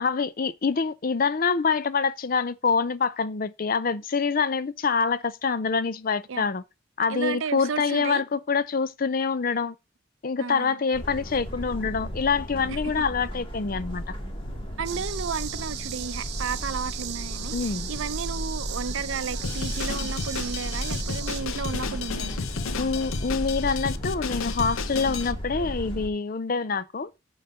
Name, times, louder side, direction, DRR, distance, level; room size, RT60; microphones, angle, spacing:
voice 1, 0.0-6.6 7.0-9.7 10.2-14.0 17.5-17.9 22.8-27.1, left 5 dB, 40° left, 0.5 m, -26 dB
voice 2, 7.1-8.2 10.4-10.8 12.7-12.8 14.8-22.5, right 5 dB, 65° right, 0.6 m, -33 dB
sound 1, 10.9-26.1, equal, 25° left, 2.1 m, -34 dB
sound 2, 14.8-21.4, right 10 dB, 50° right, 1.0 m, -37 dB
Drum kit, 19.4-25.3, left 5 dB, 75° left, 0.7 m, -33 dB
9.0 x 3.8 x 6.8 m
head